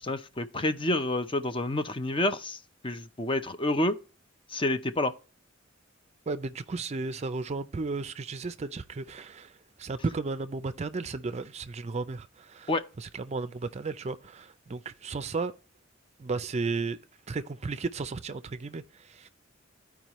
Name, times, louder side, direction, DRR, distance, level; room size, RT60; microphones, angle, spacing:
voice 1, 0.0-4.0 4.5-5.1 12.7-12.8, left 1 dB, 25° left, 0.6 m, -29 dB
voice 2, 6.3-12.7 13.0-15.5 16.2-17.0 17.3-19.3, right 3 dB, 35° right, 0.4 m, -34 dB
14.0 x 4.8 x 3.0 m
head